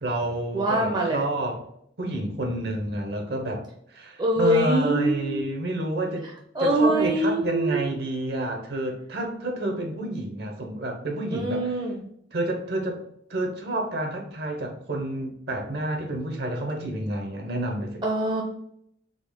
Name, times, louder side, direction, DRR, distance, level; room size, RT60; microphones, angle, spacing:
voice 1, 0.0-1.6 2.0-3.6 3.9-6.3 6.6-11.7 12.3-13.0 13.3-18.0, right 1 dB, 60° right, 3 dB, 1.0 m, -29 dB
voice 2, 0.5-1.3 4.2-5.5 6.5-8.0 11.3-12.0 18.0-18.4, right 1 dB, 25° right, -1 dB, 0.6 m, -24 dB
4.0 x 3.4 x 3.7 m, 0.71 s
head